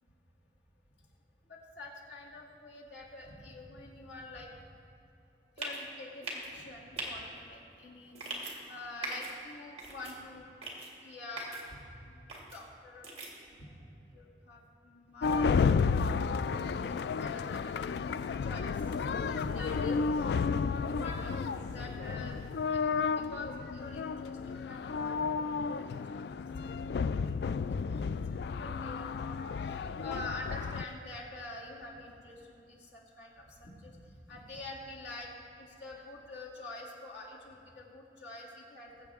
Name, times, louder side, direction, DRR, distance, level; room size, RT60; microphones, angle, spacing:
voice 1, 1.5-4.5 5.6-10.5 11.0-13.2 13.5-13.8 14.1-16.1 16.3-18.2 18.4-20.3 20.5-26.3 26.6-26.7 27.0-27.3 27.6-35.3 35.6-39.1, left 2 dB, 85° left, -4 dB, 2.5 m, -47 dB
sound 1, 5.6-5.8 6.2-6.5 7.0-7.1 8.1-8.5 9.0-9.3 9.8-10.1 10.6-10.9 11.4-11.6 12.3-12.6 13.0-13.3, right 2 dB, 35° right, 2.1 m, -39 dB
sound 2, 15.2-30.8, left 5 dB, 65° left, 0.3 m, -32 dB
21.0 x 7.8 x 3.6 m, 2.7 s
head